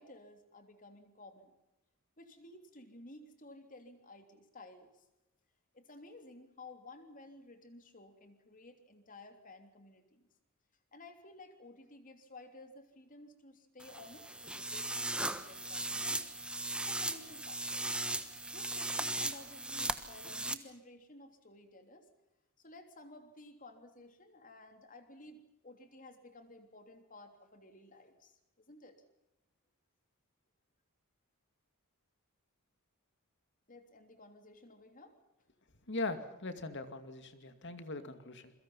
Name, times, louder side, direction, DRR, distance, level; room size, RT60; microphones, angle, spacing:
voice 1, 0.0-1.5 2.2-5.1 5.7-10.3 10.9-16.3 16.9-18.0 18.5-22.1 22.6-29.0 33.7-35.2 37.4-37.8 38.0-38.4, left 2 dB, 35° left, 7 dB, 3.3 m, -55 dB
sound 1, 13.8-20.5, right 2 dB, 5° right, 1.2 m, -37 dB
voice 2, 35.9-38.5, left 2 dB, 55° left, 9 dB, 2.4 m, -40 dB
28.0 x 23.0 x 5.6 m, 0.93 s
head